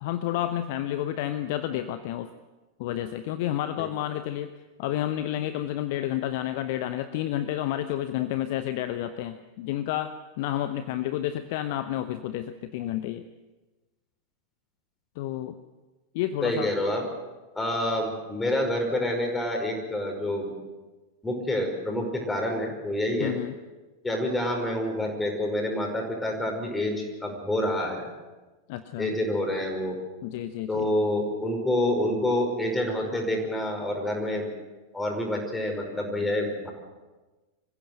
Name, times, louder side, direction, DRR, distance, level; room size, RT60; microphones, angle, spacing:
voice 1, 0.0-2.3 2.8-4.5 4.8-13.2 15.2-15.5 16.1-16.7 23.2-23.6 28.7-29.2 30.2-30.9, left 12 dB, 50° left, 11 dB, 0.9 m, -30 dB
voice 2, 16.4-17.1 17.5-20.5 21.2-23.3 24.0-28.1 29.0-29.9 30.7-34.5 34.9-36.7, left 1 dB, 10° left, 2 dB, 5.3 m, -27 dB
25.5 x 16.0 x 7.9 m, 1.2 s
figure-of-eight pair, 90°, 0 cm